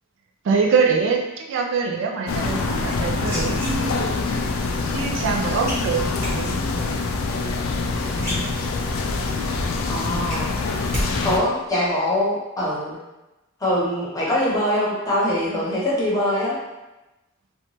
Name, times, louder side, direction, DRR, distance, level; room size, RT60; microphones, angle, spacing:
voice 1, 0.4-4.1 4.9-6.6, right 5 dB, 65° right, 1 dB, 0.3 m, -24 dB
sound 1, 2.3-11.4, left 3 dB, 85° left, 0.3 m, -25 dB
sound 2, 2.9-4.2 5.7-6.3 7.8-7.9 8.1-9.0 9.4-9.5 9.8-11.1 11.3-11.8, equal, 15° right, 1.1 m, -31 dB
voice 2, 9.9-10.5 11.2-13.0 13.6-16.5, left 1 dB, 20° left, -7 dB, 0.8 m, -23 dB
2.8 x 2.2 x 2.9 m, 1.0 s
head